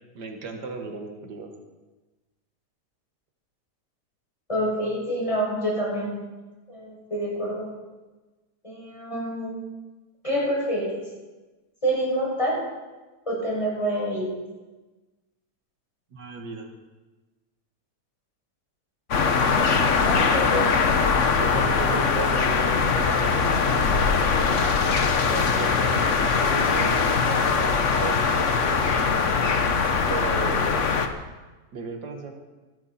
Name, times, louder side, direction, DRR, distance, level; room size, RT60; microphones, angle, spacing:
voice 1, 0.1-1.5 16.1-16.7 20.1-20.3 20.9-24.1 24.4-24.7 25.2-29.0 30.1-30.8 31.7-32.3, right 4 dB, 75° right, 3 dB, 2.4 m, -36 dB
voice 2, 4.5-6.1 6.7-7.7 8.6-9.6 10.2-11.0 11.8-12.6 13.3-14.3 19.8-20.7, equal, 20° left, -4 dB, 6.6 m, -27 dB
sound 1, 19.1-31.1, left 5 dB, 50° left, 1.3 m, -22 dB
23.0 x 12.0 x 4.4 m, 1.2 s
omnidirectional pair, 1.8 m